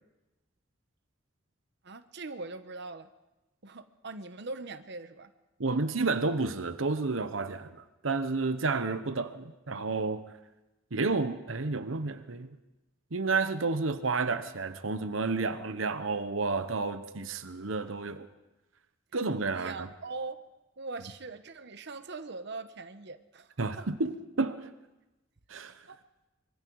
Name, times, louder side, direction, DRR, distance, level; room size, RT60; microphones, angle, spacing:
voice 1, 1.8-3.1 3.6-5.3 19.5-20.5 20.8-23.9 25.9-26.0, right 3 dB, 60° right, 1.1 m, -41 dB
voice 2, 5.6-10.2 10.9-12.5 13.1-18.3 19.1-19.9 23.6-24.7 25.5-25.8, right 3 dB, 90° right, 1.0 m, -31 dB
25.0 x 24.0 x 4.8 m
head